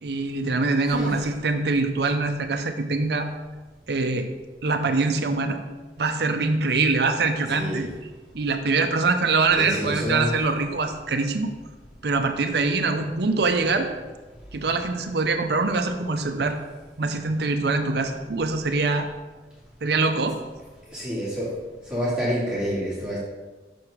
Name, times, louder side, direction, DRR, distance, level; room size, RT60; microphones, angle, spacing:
voice 1, 0.0-3.3 3.9-4.3 4.6-5.6 6.0-7.9 8.3-11.5 12.0-13.9 14.5-16.6 17.0-19.1 19.8-20.4, right 3 dB, 65° right, 6 dB, 0.6 m, -24 dB
voice 2, 7.5-7.8 9.5-10.3 20.9-21.6 21.9-23.2, equal, 5° right, -9 dB, 2.2 m, -28 dB
6.2 x 4.8 x 4.9 m, 1.2 s
head